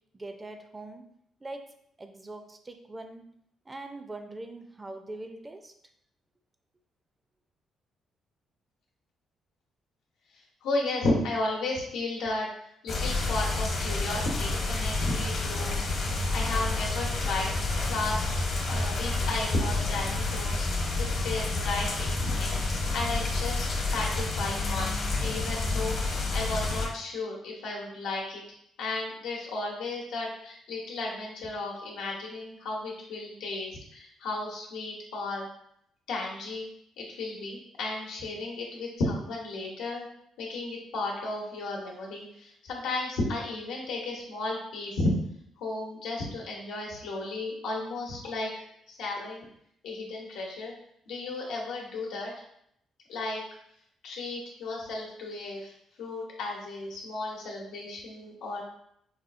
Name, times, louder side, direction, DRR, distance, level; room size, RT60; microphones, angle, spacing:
voice 1, 0.1-1.0 1.4-1.7 2.0-3.2 3.7-5.7, right 2 dB, 20° right, 6 dB, 0.4 m, -42 dB
voice 2, 10.6-12.5 12.8-15.9 16.3-17.5 17.9-18.3 18.7-20.7 21.0-22.6 22.9-24.9 25.2-28.4 28.8-35.5 36.1-36.7 37.0-40.1 40.4-45.1 45.6-48.5 48.9-49.5 49.8-50.7 51.1-52.3 53.1-53.4 54.0-55.7 56.0-58.6, left 2 dB, 90° left, -2 dB, 0.9 m, -33 dB
sound 1, 12.9-26.9, left 3 dB, 60° left, 1.0 m, -29 dB
4.8 x 2.3 x 2.5 m, 0.72 s
cardioid pair, 90°, 0 cm